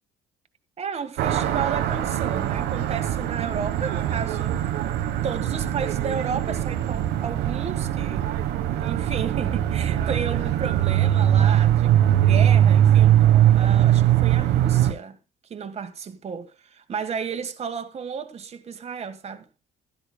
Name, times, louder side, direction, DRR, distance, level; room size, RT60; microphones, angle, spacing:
voice 1, 0.8-4.7 5.2-8.3 8.8-13.3 13.5-15.2 15.5-19.5, right 6 dB, 40° right, 1.6 m, -33 dB
sound 1, 1.2-14.9, right 11 dB, 85° right, 1.3 m, -21 dB
15.5 x 12.5 x 2.3 m
cardioid pair, 110°, 17 cm